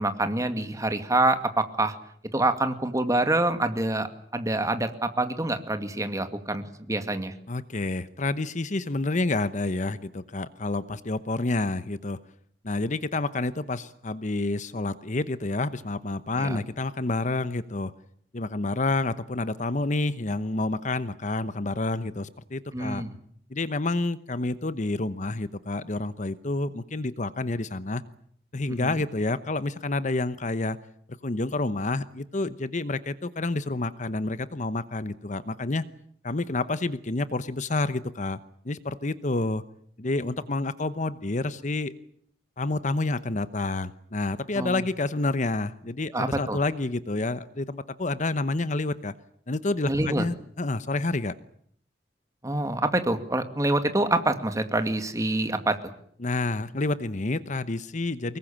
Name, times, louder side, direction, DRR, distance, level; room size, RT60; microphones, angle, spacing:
voice 1, 0.0-1.9 2.3-7.3 16.4-16.6 22.7-23.1 28.7-28.9 44.5-44.8 46.1-46.6 49.9-50.2 52.4-55.8, right 2 dB, 20° right, 8 dB, 2.3 m, -26 dB
voice 2, 7.5-12.2 12.6-17.9 18.3-23.0 23.5-28.0 28.5-30.8 31.2-35.8 36.2-39.6 40.0-41.9 42.6-49.1 49.5-51.4 56.2-58.4, left 2 dB, 45° left, 14 dB, 1.0 m, -29 dB
24.5 x 21.5 x 8.9 m, 0.65 s
head